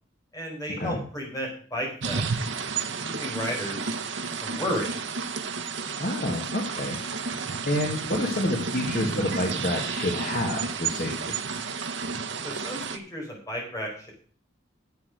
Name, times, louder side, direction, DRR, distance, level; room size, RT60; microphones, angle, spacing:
voice 1, 0.3-2.2 3.0-3.9 4.4-5.0 12.4-14.1, equal, 15° left, -1 dB, 4.8 m, -33 dB
sound 1, 2.0-13.0, right 5 dB, 65° right, 1.0 m, -31 dB
voice 2, 6.0-7.0 7.6-11.4, left 1 dB, 45° left, -1 dB, 1.9 m, -28 dB
10.5 x 7.7 x 6.5 m, 0.44 s
head